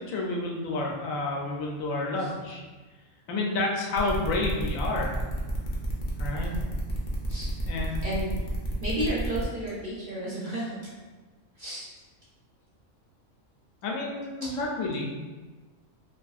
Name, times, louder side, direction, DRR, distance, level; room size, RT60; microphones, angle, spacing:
voice 1, 0.1-2.6 3.3-5.2 6.2-6.5 7.7-8.1 13.8-15.1, left 2 dB, 80° left, -1 dB, 1.0 m, -30 dB
sound 1, 4.0-9.4, right 1 dB, 55° left, 0.5 m, -33 dB
voice 2, 6.4-6.7 7.3-7.5 7.9-8.3 8.8-10.9 11.6-11.9 14.4-14.5, right 1 dB, 55° right, -7 dB, 0.6 m, -33 dB
2.9 x 2.5 x 2.3 m, 1.2 s
omnidirectional pair, 1.4 m